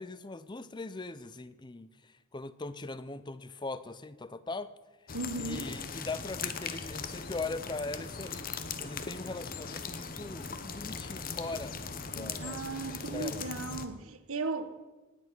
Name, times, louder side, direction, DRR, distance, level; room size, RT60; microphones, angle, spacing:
voice 1, 0.0-4.7 5.3-11.8 12.0-12.6 12.9-13.5, left 3 dB, 20° left, 0.6 m, -40 dB
sound 1, 5.1-13.8, left 5 dB, 45° left, 1.0 m, -39 dB
voice 2, 5.1-5.7 12.2-14.8, right 3 dB, 85° right, 1.2 m, -37 dB
18.0 x 9.7 x 6.1 m
head